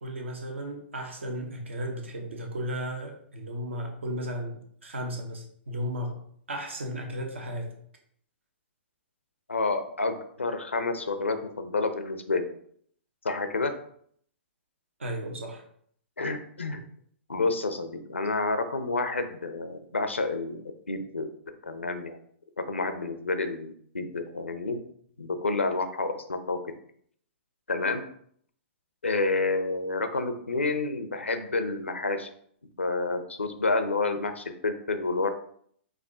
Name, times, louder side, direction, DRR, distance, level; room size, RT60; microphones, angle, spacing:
voice 1, 0.0-6.2 6.5-7.7 15.0-15.6, equal, 80° right, 2 dB, 1.0 m, -35 dB
voice 2, 9.5-12.5 13.2-13.7 16.2-16.8 17.3-20.6 20.9-21.3 21.6-22.2 22.7-24.8 25.2-26.6 27.7-28.0 29.0-32.3 32.8-35.3, left 3 dB, 90° left, 8 dB, 0.6 m, -29 dB
4.8 x 2.6 x 3.5 m, 0.63 s
figure-of-eight pair, 115°, 6 cm